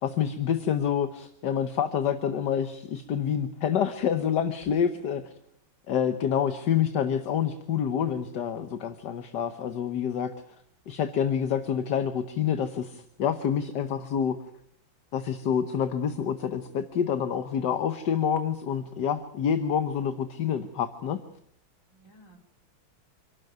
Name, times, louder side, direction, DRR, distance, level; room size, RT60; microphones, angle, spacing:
voice 1, 0.0-5.3 5.9-10.3 10.9-14.4 15.1-21.2, left 8 dB, 60° left, 10 dB, 1.6 m, -27 dB
voice 2, 4.6-5.0 21.9-22.4, right 1 dB, 40° left, 2 dB, 4.4 m, -52 dB
27.0 x 12.5 x 9.2 m, 0.69 s
omnidirectional pair, 2.1 m